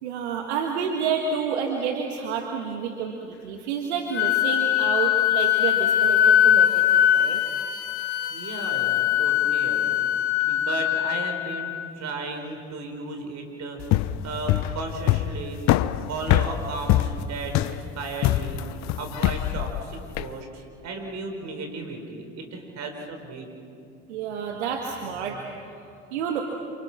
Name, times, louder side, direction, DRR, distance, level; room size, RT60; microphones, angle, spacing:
voice 1, 0.0-7.4 24.1-25.5 26.1-26.4, right 6 dB, 80° right, 2 dB, 1.8 m, -29 dB
Wind instrument woodwind instrument, 4.1-11.9, left 11 dB, 80° left, 0.9 m, -22 dB
voice 2, 8.3-15.6 16.1-18.6 18.9-23.5, right 3 dB, 55° right, 4 dB, 5.0 m, -35 dB
sound 1, 13.8-20.3, left 14 dB, 55° left, 0.8 m, -24 dB
28.0 x 27.5 x 6.2 m, 2.4 s
hypercardioid pair, 60°, 33 cm